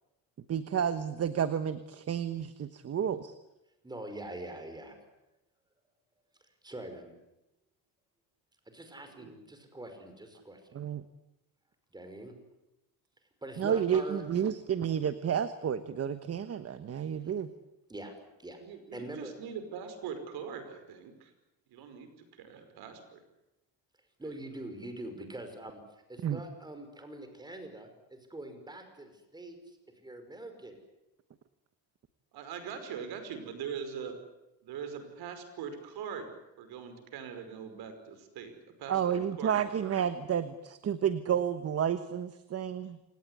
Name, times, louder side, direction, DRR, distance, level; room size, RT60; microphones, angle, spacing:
voice 1, 0.5-3.3 10.7-11.0 13.6-17.5 26.2-26.4 38.9-43.0, right 8 dB, 40° right, 12 dB, 1.2 m, -31 dB
voice 2, 3.8-4.9 6.6-7.1 8.7-10.8 11.9-12.3 13.4-14.2 17.2-17.3 17.9-18.1 18.4-18.6 18.9-19.3 24.2-30.8, right 1 dB, 10° right, 6 dB, 5.5 m, -44 dB
voice 3, 9.0-9.4 18.6-21.3 21.7-23.2 32.3-34.2 34.6-36.3 36.6-38.5 38.8-39.6, right 7 dB, 70° right, 9 dB, 5.2 m, -42 dB
28.0 x 18.0 x 9.9 m, 0.94 s
cardioid pair, 125°, 39 cm